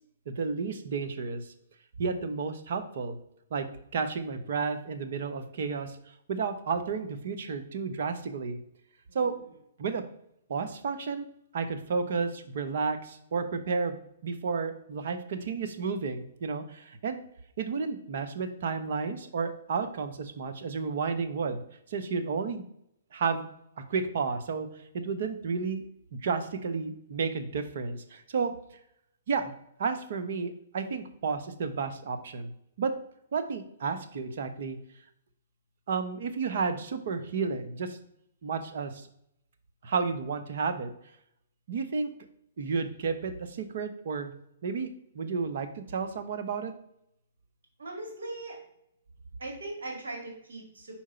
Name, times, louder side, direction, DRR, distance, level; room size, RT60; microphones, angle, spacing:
voice 1, 0.3-1.4 2.0-3.2 3.5-3.7 3.9-6.0 6.3-8.6 9.1-9.3 9.8-10.0 10.5-11.2 11.5-17.2 17.6-21.6 21.9-22.6 23.1-23.5 23.8-24.7 24.9-25.8 26.1-28.5 29.3-29.5 29.8-32.5 32.8-32.9 33.3-34.8 35.9-38.0 38.4-39.1 39.8-40.9 41.7-42.1 42.6-44.3 44.6-46.7, right 5 dB, 60° right, 7 dB, 0.9 m, -32 dB
voice 2, 9.1-9.5 47.8-48.6 49.4-51.0, right 2 dB, 80° right, 0 dB, 2.1 m, -40 dB
4.9 x 4.5 x 5.6 m, 0.73 s
hypercardioid pair, 130°, 0 cm